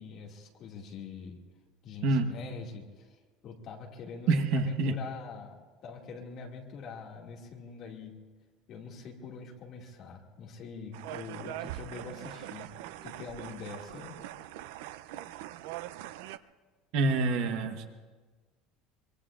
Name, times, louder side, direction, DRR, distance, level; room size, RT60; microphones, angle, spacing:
voice 1, 0.0-1.4 1.8-3.2 3.4-5.6 5.8-8.2 8.7-12.7 13.0-14.2, left 5 dB, 35° left, -1 dB, 2.2 m, -44 dB
voice 2, 4.3-5.0 16.9-17.9, right 3 dB, 55° right, 7 dB, 1.1 m, -26 dB
sound 1, 10.9-16.4, right 14 dB, 80° right, 0.5 m, -42 dB
24.5 x 24.0 x 2.5 m, 1.4 s
cardioid pair, 170°, 0 cm